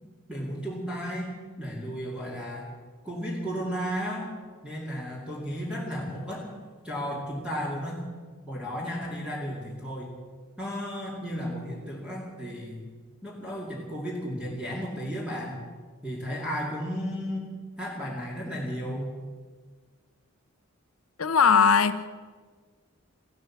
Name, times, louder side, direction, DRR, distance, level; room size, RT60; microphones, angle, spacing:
voice 1, 0.3-1.3 1.6-2.7 3.0-4.3 4.6-6.5 6.8-8.0 8.5-10.1 10.6-12.8 13.2-15.6 16.0-17.5 17.8-19.1, equal, 5° right, -5 dB, 2.5 m, -34 dB
voice 2, 21.2-22.1, left 6 dB, 65° left, 12 dB, 0.8 m, -20 dB
15.0 x 12.5 x 7.3 m, 1.5 s
head